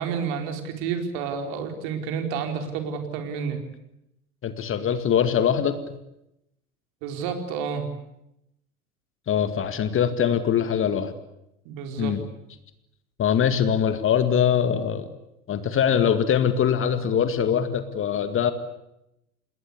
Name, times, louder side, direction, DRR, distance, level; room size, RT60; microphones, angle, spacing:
voice 1, 0.0-3.6 7.0-7.9 11.6-12.2, right 6 dB, 50° right, 5 dB, 4.6 m, -30 dB
voice 2, 4.4-5.8 9.3-11.1 12.0-12.2 13.2-15.1 15.5-18.5, left 8 dB, 30° left, 11 dB, 2.0 m, -22 dB
28.0 x 21.0 x 8.4 m, 0.84 s
figure-of-eight pair, 85°, 44 cm